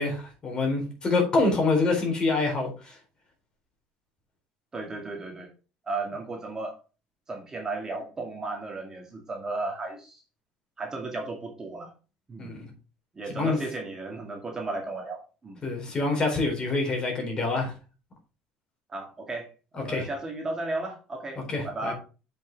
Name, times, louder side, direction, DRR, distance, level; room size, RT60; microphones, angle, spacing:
voice 1, 0.0-2.9 12.4-12.6 13.3-13.6 15.6-17.7 19.9-20.1 21.5-21.9, left 3 dB, 25° left, 3.9 m, -26 dB
voice 2, 4.7-5.5 5.9-6.8 7.3-10.2 10.8-11.9 12.3-12.5 13.1-15.6 18.9-19.5 19.8-21.9, right 2 dB, 20° right, 2.1 m, -34 dB
7.6 x 5.7 x 4.5 m
cardioid pair, 135°, 3 cm